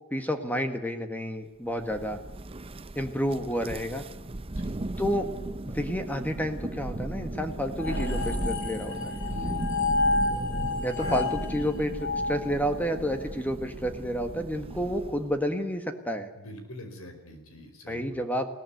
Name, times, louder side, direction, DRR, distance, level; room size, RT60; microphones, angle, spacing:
voice 1, 0.1-2.2 2.9-4.0 5.0-5.3 5.6-9.2 10.8-16.3 17.9-18.5, equal, 10° left, 7 dB, 1.6 m, -30 dB
Thunder, 1.7-15.4, right 2 dB, 25° right, 0.7 m, -36 dB
sound 1, 7.8-13.2, left 3 dB, 60° left, 5.6 m, -30 dB
voice 2, 9.3-10.0 16.3-18.2, equal, 80° left, 7 dB, 5.2 m, -45 dB
21.0 x 17.5 x 9.3 m, 1.1 s
head